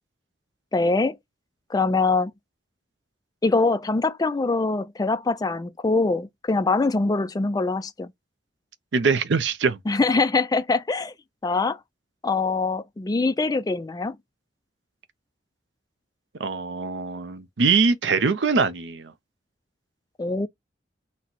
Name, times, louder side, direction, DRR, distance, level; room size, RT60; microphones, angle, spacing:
voice 1, 0.7-1.2 1.7-2.3 3.4-8.1 9.9-11.1 11.4-11.8 12.2-14.2 20.2-20.5, left 3 dB, 20° left, 0.3 m, -23 dB
voice 2, 8.9-9.8 16.4-19.1, right 4 dB, 85° right, 0.6 m, -23 dB
4.0 x 2.1 x 4.4 m
head